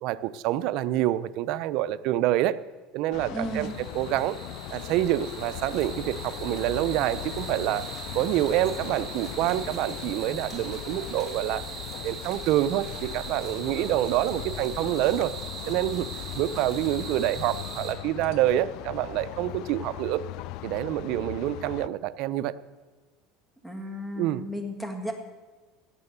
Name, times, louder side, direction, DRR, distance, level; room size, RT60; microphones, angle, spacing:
voice 1, 0.0-2.6 2.9-3.7 3.9-4.4 4.7-11.6 12.0-15.3 15.7-16.1 16.4-20.2 20.6-22.5 24.2-24.4, right 14 dB, 60° right, 14 dB, 0.5 m, -27 dB
sound 1, 3.1-21.9, left 15 dB, 60° left, 0.4 m, -39 dB
voice 2, 3.3-3.8 23.6-25.1, equal, ahead, 4 dB, 1.7 m, -34 dB
sound 2, 3.4-17.9, right 5 dB, 25° right, 2.3 m, -41 dB
17.0 x 6.7 x 6.8 m, 1.3 s
supercardioid pair, 130°, 0 cm